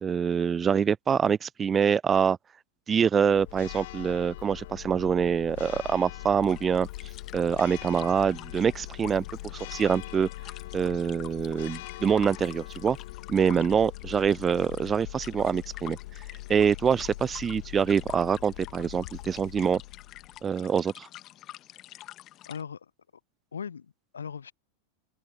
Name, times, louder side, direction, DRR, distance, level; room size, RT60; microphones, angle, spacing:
voice 1, 0.0-2.4 2.9-6.9 7.3-9.2 9.7-10.3 10.7-13.0 13.3-16.0 16.5-19.8 20.4-21.1, right 7 dB, 20° right, 0.3 m, -25 dB
Church bell, 3.2-20.5, left 17 dB, 55° left, 1.6 m, -42 dB
sound 1, 6.4-22.6, left 14 dB, 35° left, 1.7 m, -48 dB
voice 2, 22.5-22.9 23.5-24.5, left 7 dB, 70° left, 0.6 m, -39 dB
open air
figure-of-eight pair, 90°, 0 cm